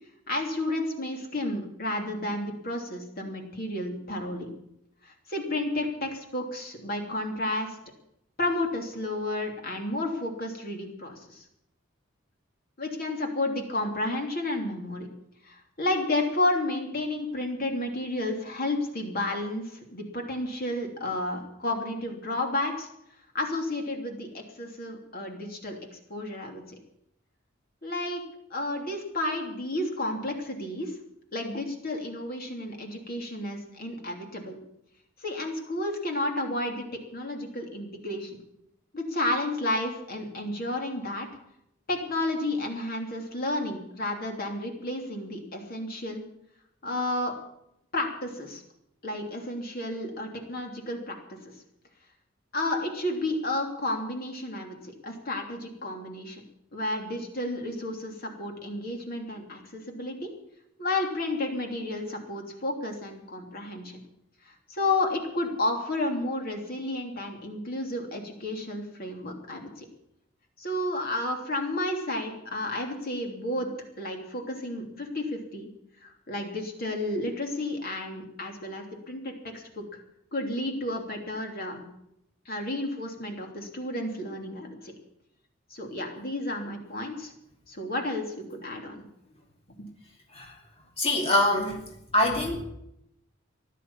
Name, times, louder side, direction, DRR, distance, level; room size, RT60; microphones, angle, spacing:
voice 1, 0.3-4.5 5.0-7.8 8.4-11.4 12.8-15.1 15.4-22.9 23.3-26.6 27.8-28.2 28.5-31.0 31.3-34.6 35.2-38.4 38.9-41.3 41.9-46.2 46.8-47.3 47.9-48.6 49.0-51.4 52.5-56.4 56.7-60.3 60.8-64.0 64.4-69.8 70.6-73.7 74.0-75.7 76.0-79.8 80.3-81.8 82.4-84.9 85.7-87.3 87.7-89.0 89.7-89.9, left 1 dB, 50° left, 2 dB, 3.1 m, -31 dB
voice 2, 91.0-91.8 92.1-92.6, left 1 dB, 30° left, 0 dB, 3.0 m, -24 dB
15.5 x 11.5 x 7.2 m, 0.78 s
head